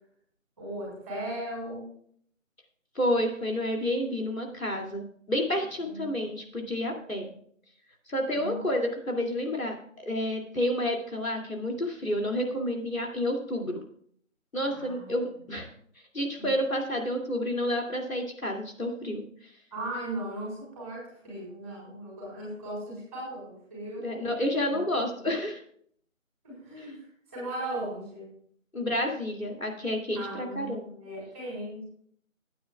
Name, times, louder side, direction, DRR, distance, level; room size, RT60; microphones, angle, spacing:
voice 1, 0.6-1.9 5.8-6.1 8.3-8.6 14.7-15.1 16.4-16.5 19.7-24.3 24.7-25.3 26.4-28.3 30.1-31.8, right 1 dB, 10° right, -6 dB, 4.2 m, -38 dB
voice 2, 2.9-7.3 8.1-13.7 14.5-15.7 16.1-19.2 24.0-25.6 28.7-30.8, left 1 dB, 90° left, 2 dB, 2.7 m, -30 dB
19.5 x 9.2 x 2.4 m, 0.62 s
figure-of-eight pair, 165°, 40 cm